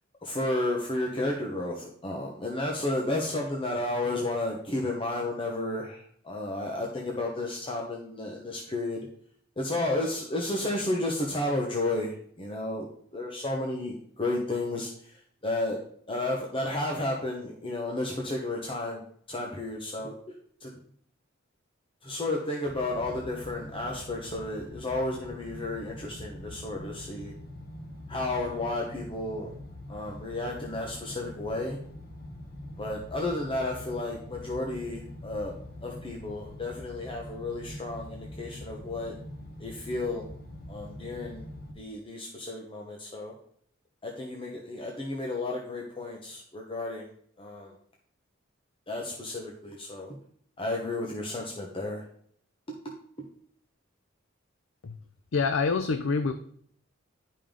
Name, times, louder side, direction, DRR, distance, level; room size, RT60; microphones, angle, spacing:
voice 1, 0.2-9.0 9.6-15.8 16.1-19.0 19.3-20.1 20.6-20.7 22.0-27.3 28.1-29.5 29.9-31.8 32.8-35.5 35.8-39.1 39.6-40.2 40.7-41.5 41.8-43.3 44.0-47.1 47.4-47.7 48.9-50.2 50.6-52.0, left 2 dB, 25° left, -1 dB, 1.0 m, -32 dB
sound 1, 22.6-41.7, left 1 dB, 50° left, 1.3 m, -44 dB
voice 2, 55.3-56.3, left 4 dB, 70° left, 9 dB, 0.5 m, -26 dB
10.5 x 5.2 x 3.7 m, 0.63 s
head